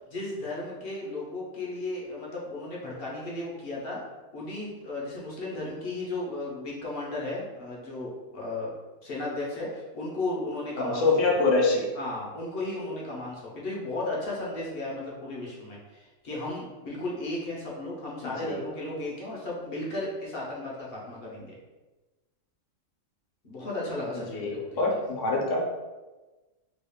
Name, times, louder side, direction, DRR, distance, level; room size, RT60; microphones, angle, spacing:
voice 1, 0.0-4.0 4.3-8.7 9.0-11.1 12.0-21.5 23.4-24.9, left 2 dB, 55° left, -4 dB, 0.9 m, -35 dB
voice 2, 10.8-11.9 18.2-18.6 24.1-25.6, left 3 dB, 75° left, -1 dB, 1.1 m, -25 dB
3.0 x 2.3 x 3.5 m, 1.2 s
omnidirectional pair, 1.3 m